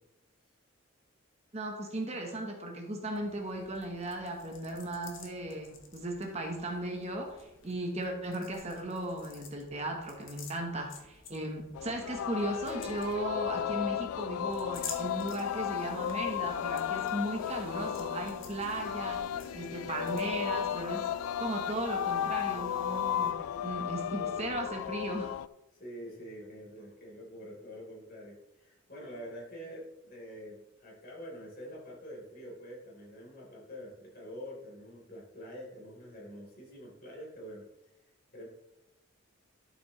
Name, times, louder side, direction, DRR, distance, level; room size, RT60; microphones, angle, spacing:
voice 1, 1.5-7.4 7.6-19.2 19.5-21.0 21.4-23.3 23.6-25.3, right 1 dB, 30° right, 2 dB, 1.1 m, -36 dB
sound 1, 3.1-20.8, left 6 dB, 65° left, 1.2 m, -51 dB
Singing, 11.8-25.5, left 10 dB, 90° left, 0.3 m, -34 dB
sound 2, 14.7-23.3, right 2 dB, 85° right, 2.1 m, -52 dB
voice 2, 23.2-23.8 24.1-24.6 25.7-37.6 38.0-38.5, equal, 45° left, -4 dB, 3.6 m, -46 dB
12.0 x 7.1 x 3.2 m, 0.92 s
head